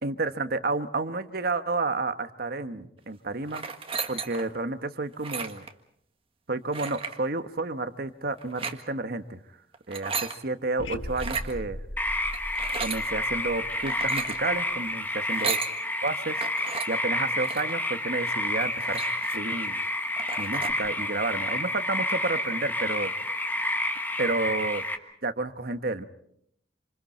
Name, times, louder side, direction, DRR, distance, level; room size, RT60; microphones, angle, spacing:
voice 1, 0.0-3.7 4.1-5.6 6.5-9.4 9.9-11.8 12.8-15.6 16.0-16.4 16.9-19.0 19.3-19.8 20.4-23.1 24.2-24.8 25.2-26.0, right 3 dB, 50° right, 9 dB, 1.2 m, -30 dB
sound 1, 3.5-4.6 5.1-5.7 6.7-7.2 8.4-8.8 9.7-10.4 11.1-11.5 12.3-13.0 13.7-14.4 15.2-15.7 16.4-16.9 17.4-17.7 18.3-18.4 18.6-19.5 19.9-20.0 20.2-20.7, right 5 dB, 30° right, 1.6 m, -34 dB
sound 2, 10.8-14.9, left 1 dB, 70° left, 1.7 m, -39 dB
sound 3, 12.0-25.0, left 1 dB, 10° left, 1.4 m, -29 dB
27.5 x 27.0 x 4.4 m, 0.70 s
head